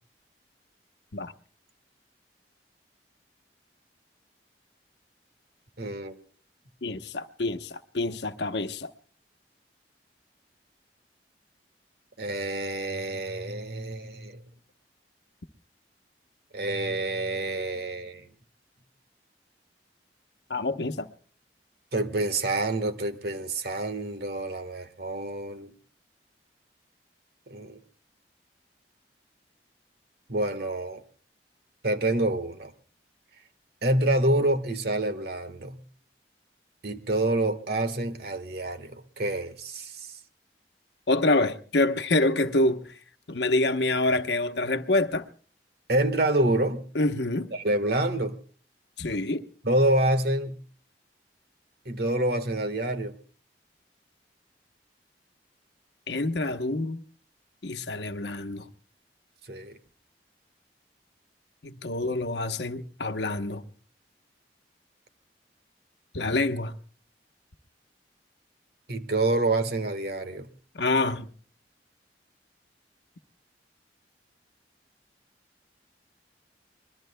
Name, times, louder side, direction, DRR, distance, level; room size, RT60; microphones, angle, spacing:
voice 1, 5.8-6.2 12.2-14.4 16.5-18.2 21.9-25.7 27.5-27.8 30.3-31.0 31.8-32.7 33.8-35.8 36.8-40.2 45.9-46.9 47.5-48.3 49.6-50.6 51.8-53.1 59.5-59.8 68.9-70.5, right 1 dB, 60° right, 1.4 m, -27 dB
voice 2, 6.8-8.9 20.5-21.1 41.1-42.9 43.3-45.3 46.9-47.5 49.0-49.5 56.1-57.0 57.6-58.7 61.6-63.6 66.1-66.8 70.7-71.3, left 2 dB, 75° left, 1.0 m, -26 dB
25.0 x 21.5 x 2.2 m
head